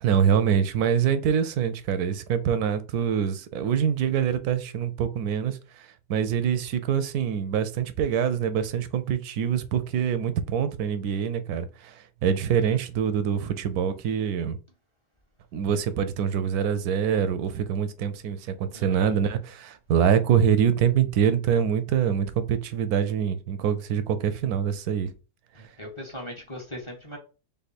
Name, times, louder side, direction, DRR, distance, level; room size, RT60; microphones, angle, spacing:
voice 1, 0.0-14.6 15.5-25.1, right 8 dB, 85° right, 1.1 m, -25 dB
voice 2, 18.7-19.2 25.5-27.2, equal, 20° left, 1.0 m, -40 dB
3.6 x 3.5 x 4.2 m
omnidirectional pair, 1.6 m